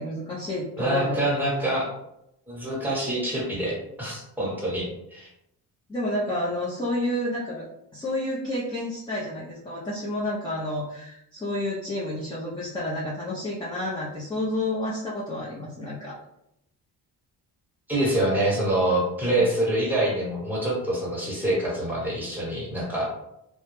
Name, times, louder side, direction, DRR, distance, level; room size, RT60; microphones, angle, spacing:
voice 1, 0.0-1.4 5.9-7.7 7.9-16.1 19.4-19.5, left 1 dB, 10° left, -7 dB, 0.5 m, -30 dB
voice 2, 0.8-1.9 2.5-5.3 17.9-23.0, right 1 dB, 5° right, -5 dB, 1.0 m, -26 dB
2.2 x 2.1 x 3.0 m, 0.82 s
cardioid pair, 95°, 40 cm